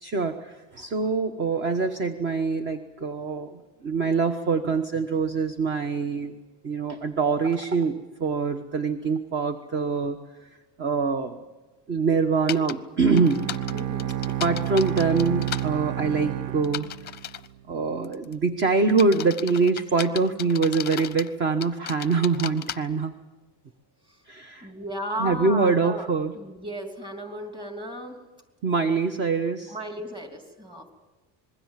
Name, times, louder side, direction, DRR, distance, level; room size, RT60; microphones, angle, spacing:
voice 1, 0.0-6.3 6.6-10.2 10.8-11.4 11.9-13.5 14.4-16.9 17.7-23.1 24.3-24.7 25.2-26.3 28.6-29.7, right 4 dB, 35° right, 8 dB, 1.2 m, -24 dB
sound 1, 12.5-12.7 13.2-15.6 16.6-17.5 18.0-18.3 18.9-21.3 21.6-22.8, left 11 dB, 30° left, 0.7 m, -35 dB
Bowed string instrument, 13.1-17.5, right 13 dB, 60° right, 0.8 m, -30 dB
voice 2, 13.7-14.1 24.1-24.2 24.6-26.1 26.3-28.2 29.7-30.9, equal, 15° right, 4 dB, 3.0 m, -35 dB
26.5 x 21.0 x 7.5 m, 1.1 s
cardioid pair, 175°, 34 cm